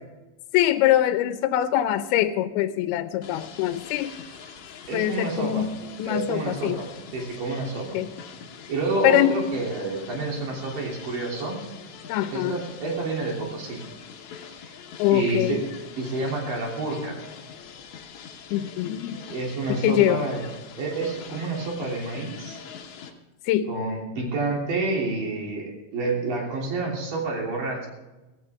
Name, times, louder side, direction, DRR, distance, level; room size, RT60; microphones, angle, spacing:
voice 1, 0.5-4.1 4.9-6.8 7.9-8.1 9.0-9.4 12.1-12.6 15.0-15.6 18.5-19.2 19.7-20.2 23.4-23.7, left 12 dB, 85° left, 11 dB, 2.5 m, -23 dB
sound 1, 3.2-23.1, left 7 dB, 60° left, 2.1 m, -43 dB
voice 2, 4.9-5.7 6.0-6.9 7.1-8.0 8.7-11.6 12.3-13.8 14.6-14.7 15.1-15.6 16.0-17.2 19.3-20.5 20.8-22.6 23.7-27.9, right 3 dB, 60° right, -1 dB, 4.7 m, -29 dB
16.0 x 16.0 x 3.6 m, 1.1 s
omnidirectional pair, 4.4 m